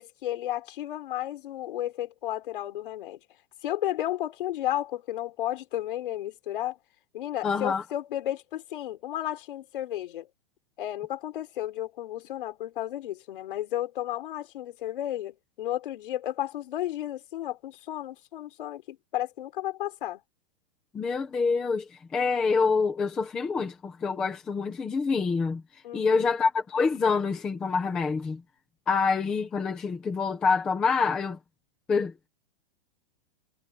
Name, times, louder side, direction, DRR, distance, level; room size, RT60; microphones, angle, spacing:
voice 1, 0.0-3.2 3.6-6.8 7.1-10.3 10.8-20.2 25.8-26.3, left 13 dB, 55° left, 3.6 m, -33 dB
voice 2, 7.4-7.8 20.9-25.6 25.9-28.4 28.9-31.4 31.9-32.3, left 5 dB, 5° left, 0.4 m, -26 dB
supercardioid pair, 180°, 31 cm